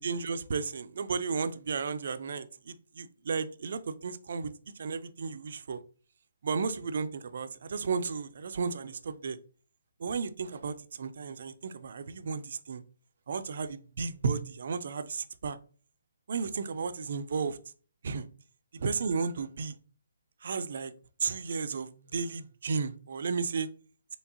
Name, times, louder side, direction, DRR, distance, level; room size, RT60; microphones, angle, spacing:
voice 1, 0.0-5.8 6.4-9.4 10.0-12.8 13.3-15.6 16.3-17.6 18.0-18.3 18.7-19.7 20.4-20.9 21.2-23.7, right 5 dB, 60° right, 0.4 m, -33 dB
4.5 x 3.2 x 2.8 m
figure-of-eight pair, 140°, 0 cm